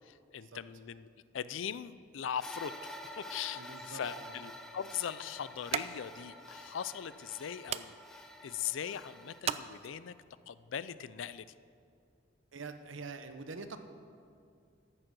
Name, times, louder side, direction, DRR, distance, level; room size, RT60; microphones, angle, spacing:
voice 1, 0.0-10.1 10.5-11.5, left 8 dB, 80° left, 16 dB, 0.4 m, -40 dB
sound 1, 2.4-9.4, left 1 dB, 5° left, 0.7 m, -48 dB
voice 2, 3.6-4.4 12.5-13.8, right 4 dB, 85° right, 8 dB, 0.9 m, -45 dB
sound 2, 4.0-10.3, right 7 dB, 35° right, 0.3 m, -43 dB
13.5 x 7.7 x 6.1 m, 2.4 s
head